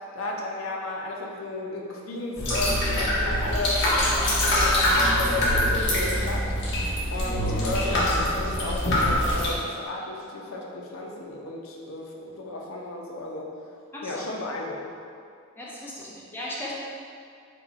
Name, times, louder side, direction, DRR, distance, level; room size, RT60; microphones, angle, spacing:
voice 1, 0.1-6.4 7.1-13.5 14.0-15.0, left 2 dB, 90° left, -1 dB, 0.7 m, -33 dB
sound 1, 2.4-9.5, left 1 dB, 60° left, 1.3 m, -24 dB
voice 2, 13.9-14.2 15.6-16.7, left 1 dB, 10° left, -6 dB, 0.7 m, -36 dB
5.4 x 2.3 x 4.0 m, 2.4 s
head